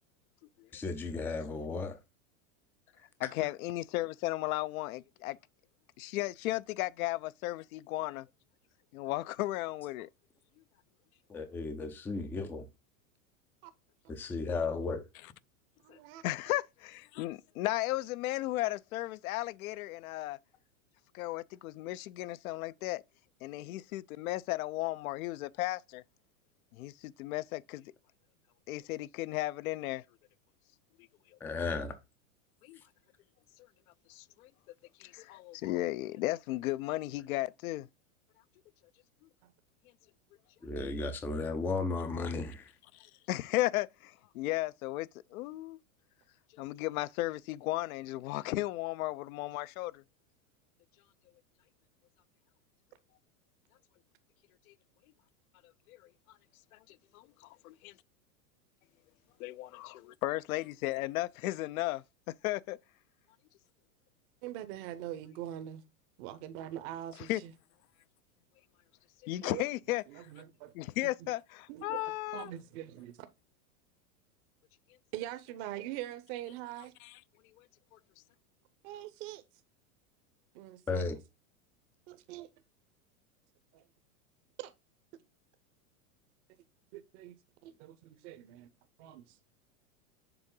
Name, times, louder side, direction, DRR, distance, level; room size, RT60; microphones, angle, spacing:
voice 1, 0.7-2.0 11.3-12.7 14.1-15.0 31.4-31.9 40.6-42.7 80.9-81.2, left 3 dB, 5° left, 0.3 m, -34 dB
voice 2, 3.2-5.4 6.0-8.3 8.9-10.1 15.9-16.0 16.2-20.4 21.1-23.0 23.4-26.0 26.7-27.9 28.7-30.0 32.6-32.8 34.1-34.5 35.0-37.9 42.9-45.8 46.5-50.0 54.7-54.8 55.9-56.0 56.7-57.9 59.4-62.0 62.4-62.8 67.3-67.4 69.2-70.3 70.7-72.5 77.0-77.1 77.6-77.7 77.9-78.0, left 17 dB, 70° left, 0.5 m, -35 dB
voice 3, 15.8-16.2 64.4-65.8 66.2-67.5 69.4-69.6 70.1-70.7 71.2-71.3 71.7-72.0 72.3-73.2 75.1-76.9 78.8-79.4 80.5-81.0 82.1-82.5 83.7-83.8 84.6-84.7 86.9-87.3 87.6-88.7 89.0-89.4, right 13 dB, 50° right, 0.8 m, -43 dB
6.9 x 3.7 x 3.7 m
supercardioid pair, 125°, 44 cm